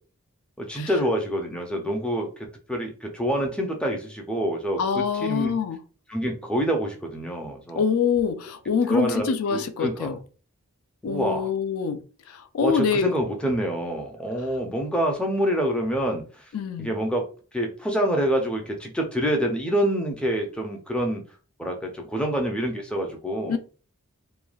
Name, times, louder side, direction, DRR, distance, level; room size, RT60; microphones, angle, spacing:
voice 1, 0.6-2.3 2.7-5.5 6.1-7.8 8.9-10.2 11.0-11.5 12.6-16.5 16.8-21.2 21.6-23.6, right 1 dB, 5° left, 0.4 m, -27 dB
voice 2, 4.8-5.8 7.8-10.2 11.0-13.1 16.5-16.9 23.5-23.6, left 6 dB, 80° left, 0.4 m, -25 dB
3.1 x 2.2 x 2.3 m
head